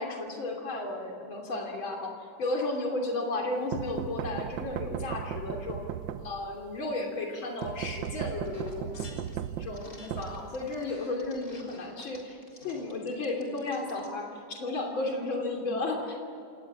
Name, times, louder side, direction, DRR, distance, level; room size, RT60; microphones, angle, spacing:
voice 1, 0.0-2.1 2.4-5.8 6.2-9.3 9.6-12.4 12.6-16.2, left 2 dB, 80° left, 1 dB, 3.8 m, -33 dB
sound 1, 3.7-6.7 7.6-10.9, right 10 dB, 75° right, 1.4 m, -37 dB
sound 2, 7.6-8.1 8.4-9.4 9.7-14.2, left 2 dB, 45° left, 4.4 m, -50 dB
27.0 x 19.0 x 7.4 m, 2.5 s
omnidirectional pair, 2.1 m